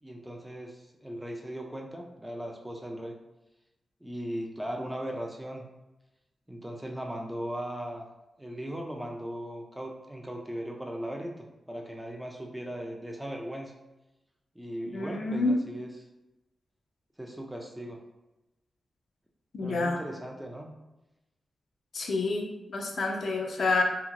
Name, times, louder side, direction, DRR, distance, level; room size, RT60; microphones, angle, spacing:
voice 1, 0.0-3.2 4.0-5.6 6.5-8.1 8.4-13.7 14.6-15.9 17.2-18.0 19.6-20.8, equal, 5° right, 1 dB, 0.3 m, -38 dB
voice 2, 14.9-15.6 19.5-20.0 21.9-23.8, left 3 dB, 60° left, 1 dB, 0.4 m, -28 dB
2.8 x 2.8 x 2.5 m, 0.98 s
wide cardioid pair, 140°, 0 cm